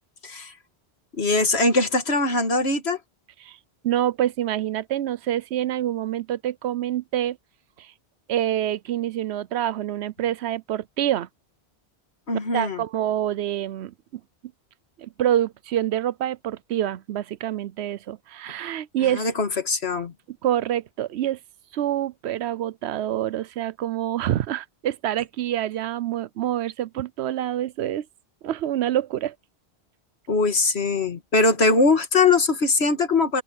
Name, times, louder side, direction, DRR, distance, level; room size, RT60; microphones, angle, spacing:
voice 1, 0.2-0.5 1.2-3.0 12.3-12.8 19.0-20.1 30.3-33.4, left 3 dB, 80° left, 2.1 m, -21 dB
voice 2, 3.8-7.4 7.8-7.9 8.3-11.3 12.5-13.9 15.0-19.3 20.3-21.4 21.7-28.1 28.4-29.3, right 12 dB, 85° right, 0.9 m, -26 dB
open air
omnidirectional pair, 1.1 m